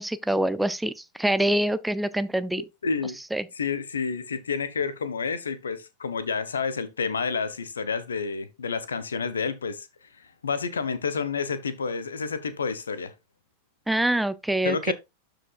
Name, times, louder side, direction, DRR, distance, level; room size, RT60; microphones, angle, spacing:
voice 1, 0.0-2.6 3.3-3.4 13.9-14.9, right 1 dB, 5° right, 0.4 m, -25 dB
voice 2, 2.8-3.2 3.5-9.9 10.2-13.1 14.6-14.9, left 5 dB, 70° left, 1.1 m, -29 dB
12.5 x 5.1 x 2.4 m
figure-of-eight pair, 90°, 0 cm